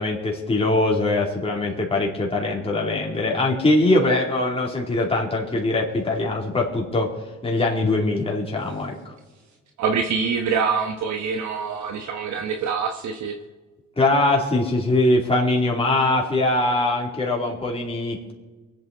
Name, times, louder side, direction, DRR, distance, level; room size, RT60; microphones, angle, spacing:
voice 1, 0.0-7.1 7.4-8.9 14.0-18.3, left 2 dB, 20° left, -2 dB, 2.9 m, -22 dB
voice 2, 9.8-13.3, right 5 dB, 70° right, 4 dB, 1.2 m, -25 dB
24.0 x 8.9 x 4.0 m, 1.2 s
cardioid pair, 90°, 30 cm